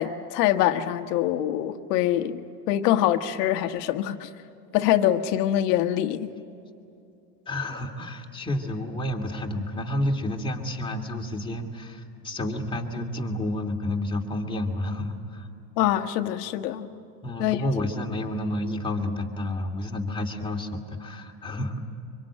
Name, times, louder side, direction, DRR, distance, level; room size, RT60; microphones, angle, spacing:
voice 1, 0.0-4.3 4.7-6.3 15.8-16.9 17.4-17.6, left 12 dB, 70° left, 7 dB, 1.6 m, -24 dB
voice 2, 7.5-15.5 17.2-21.8, left 1 dB, 10° left, 2 dB, 2.8 m, -30 dB
25.0 x 24.0 x 8.9 m, 2.7 s
supercardioid pair, 125°, 49 cm